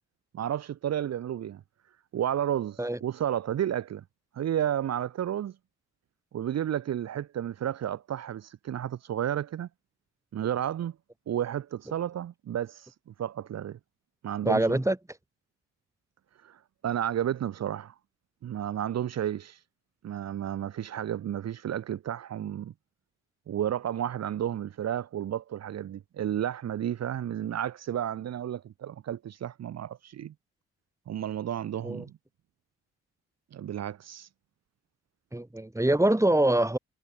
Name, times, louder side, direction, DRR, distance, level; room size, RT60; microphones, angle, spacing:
voice 1, 0.3-1.6 2.1-4.0 4.3-5.5 6.3-9.7 10.3-10.9 11.3-13.8 14.2-14.8 16.4-17.9 18.4-19.6 20.0-22.7 23.5-30.3 31.1-32.1 33.5-34.3, right 10 dB, 60° right, 1.2 m, -32 dB
voice 2, 14.4-15.0 31.8-32.1 35.3-36.8, right 1 dB, 10° right, 3.3 m, -24 dB
hypercardioid pair, 45°, 29 cm